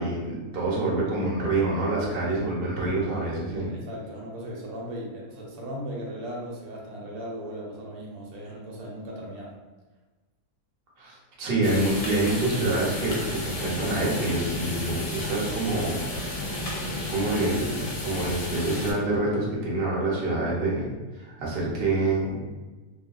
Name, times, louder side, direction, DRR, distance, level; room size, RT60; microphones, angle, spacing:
voice 1, 0.0-3.7 11.0-16.4 17.1-22.6, right 2 dB, 50° right, -5 dB, 0.8 m, -27 dB
voice 2, 3.5-9.5, equal, 75° right, -3 dB, 1.1 m, -37 dB
sound 1, 11.6-18.9, left 1 dB, 60° left, 0.9 m, -32 dB
2.7 x 2.6 x 2.3 m, 1.2 s
omnidirectional pair, 1.7 m